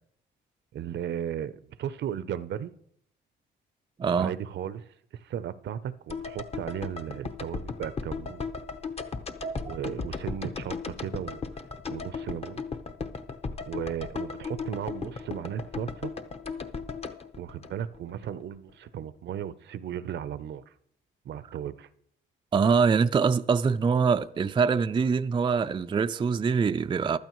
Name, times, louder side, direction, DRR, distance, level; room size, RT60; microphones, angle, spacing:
voice 1, 0.7-2.7 4.2-4.8 5.1-8.6 9.6-11.4 11.9-12.6 13.6-16.1 17.4-20.6 21.2-21.9, right 9 dB, 65° right, 0.6 m, -35 dB
voice 2, 4.0-4.3 9.4-9.6 22.5-27.2, right 5 dB, 25° right, 0.4 m, -24 dB
sound 1, 6.1-18.3 18.5-18.6, left 4 dB, 30° left, 0.8 m, -36 dB
15.0 x 12.0 x 3.1 m
cardioid pair, 90°, 20 cm